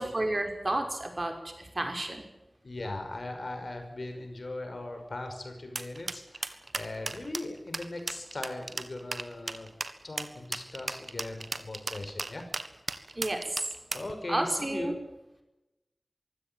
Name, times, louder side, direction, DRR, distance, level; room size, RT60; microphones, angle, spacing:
voice 1, 0.0-2.3 13.2-13.6 14.3-15.0, right 1 dB, 45° right, 4 dB, 5.5 m, -31 dB
voice 2, 2.6-9.7 10.0-12.4 13.9-15.0, left 2 dB, 75° left, 5 dB, 5.7 m, -39 dB
sound 1, 5.8-14.1, right 3 dB, 85° right, 1.6 m, -35 dB
24.0 x 16.0 x 9.1 m, 0.96 s
wide cardioid pair, 60°, 0 cm